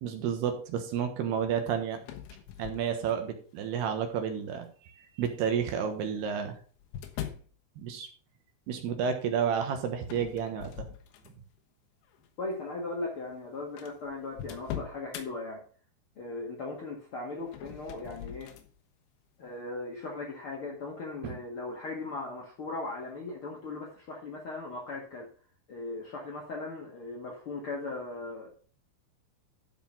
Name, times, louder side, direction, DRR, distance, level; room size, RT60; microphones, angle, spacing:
voice 1, 0.0-2.0 2.6-4.7 5.2-6.6 7.8-8.1 8.7-10.9 21.2-21.4, right 7 dB, 70° right, 6 dB, 3.1 m, -31 dB
sound 1, 2.0-3.4 4.1-4.5 5.6-7.5 10.0-11.6 12.0-12.3 13.1-13.2 13.3-13.4 13.8-15.3 17.4-18.7, left 10 dB, 80° left, 3.6 m, -42 dB
voice 2, 12.4-15.6 16.1-18.5 19.4-25.3 25.7-28.5, left 3 dB, 60° left, -2 dB, 1.4 m, -38 dB
13.0 x 5.0 x 5.6 m, 0.42 s
omnidirectional pair, 5.3 m